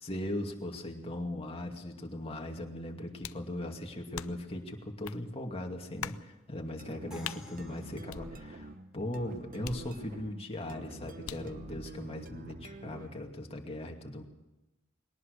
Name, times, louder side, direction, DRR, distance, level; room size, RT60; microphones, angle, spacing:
voice 1, 0.0-14.2, left 1 dB, 30° left, 2 dB, 2.4 m, -39 dB
sound 1, 3.2-3.5 4.1-4.5 5.0-5.2 6.0-6.3 7.2-7.4 8.1-8.7 9.6-10.3 11.2-11.6, left 9 dB, 80° left, 0.6 m, -42 dB
sound 2, 6.8-13.3, right 2 dB, 40° right, 1.0 m, -47 dB
Crash cymbal, 7.1-9.0, left 2 dB, 5° right, 2.8 m, -53 dB
21.5 x 18.5 x 6.7 m, 0.99 s
head